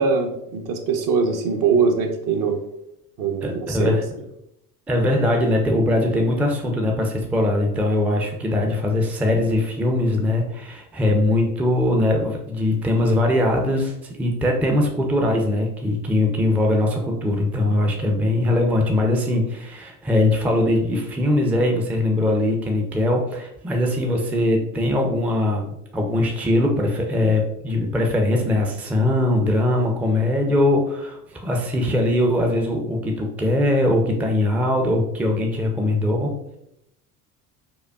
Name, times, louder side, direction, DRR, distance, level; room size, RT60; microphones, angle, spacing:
voice 1, 0.0-2.6 3.2-3.9, right 5 dB, 50° right, 4 dB, 0.7 m, -22 dB
voice 2, 3.4-4.0 4.9-36.3, left 1 dB, 5° right, 1 dB, 0.4 m, -21 dB
4.9 x 2.2 x 2.3 m, 0.80 s
hypercardioid pair, 70°, 45 cm